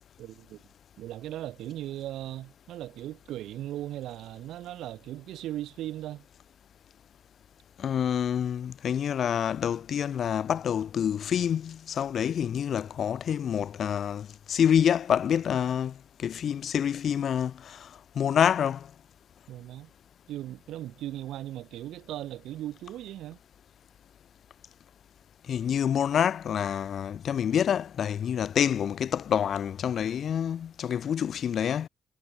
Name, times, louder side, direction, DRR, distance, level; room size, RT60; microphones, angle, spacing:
voice 1, 0.2-0.6 1.0-6.2 19.5-19.9 20.3-23.4, right 13 dB, 80° right, 4.8 m, -38 dB
voice 2, 7.8-15.9 16.2-17.9 18.2-18.9 25.5-31.9, left 8 dB, 60° left, 5.9 m, -27 dB
cardioid pair, 90°, 0 cm